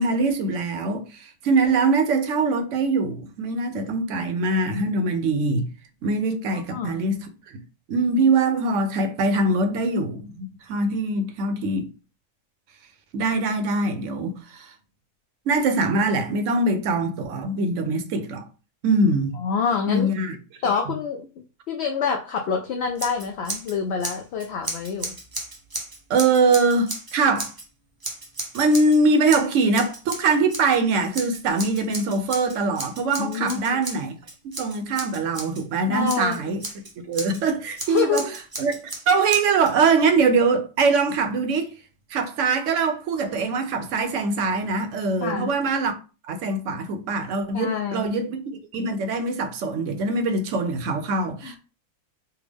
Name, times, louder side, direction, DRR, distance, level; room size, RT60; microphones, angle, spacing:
voice 1, 0.0-5.7 6.0-7.3 7.9-11.9 13.1-14.7 15.5-18.4 18.8-19.4 19.9-20.3 26.1-27.5 28.5-34.1 34.4-36.6 37.1-38.2 38.6-38.8 39.1-41.7 42.1-45.9 46.3-48.4 48.7-51.6, right 3 dB, 70° right, 0.9 m, -23 dB
voice 2, 6.5-7.0 19.4-20.1 20.6-21.3 21.7-25.1 33.2-33.8 35.9-36.6 37.9-38.3 45.2-45.5 47.5-48.1 51.4-51.6, left 6 dB, 65° left, 0.7 m, -27 dB
Scissors, 22.9-23.7 24.0-27.6 28.0-29.0 29.3-30.8 31.1-35.6 36.1-37.4 37.8-39.7, right 2 dB, 25° right, 0.5 m, -34 dB
3.4 x 2.2 x 3.3 m
omnidirectional pair, 1.4 m